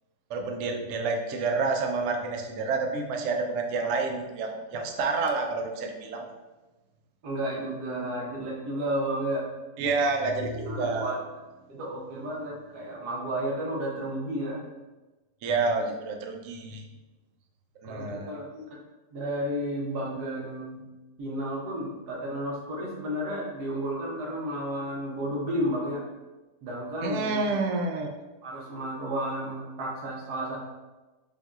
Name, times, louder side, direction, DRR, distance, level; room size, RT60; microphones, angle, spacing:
voice 1, 0.3-6.3 9.8-11.1 15.4-16.8 17.8-18.3 27.0-28.1, right 3 dB, 90° right, 2 dB, 0.6 m, -29 dB
voice 2, 7.2-9.5 10.7-11.2 11.7-14.6 17.8-18.7 19.1-20.8 21.2-26.0 26.6-27.4 28.4-30.6, right 1 dB, 65° right, -4 dB, 1.3 m, -32 dB
5.3 x 2.6 x 2.3 m, 1.1 s
omnidirectional pair, 1.9 m